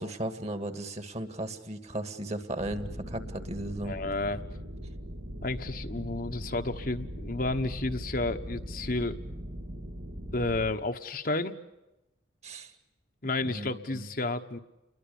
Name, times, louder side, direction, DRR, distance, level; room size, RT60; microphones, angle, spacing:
voice 1, 0.0-4.0 12.4-12.7 13.4-14.1, right 1 dB, 35° right, 10 dB, 2.1 m, -36 dB
sound 1, 2.6-10.7, equal, 85° right, 5.2 m, -40 dB
voice 2, 3.8-4.4 5.4-9.2 10.3-11.5 13.2-14.6, left 2 dB, 45° left, 6 dB, 1.2 m, -31 dB
30.0 x 22.0 x 7.0 m, 0.98 s
head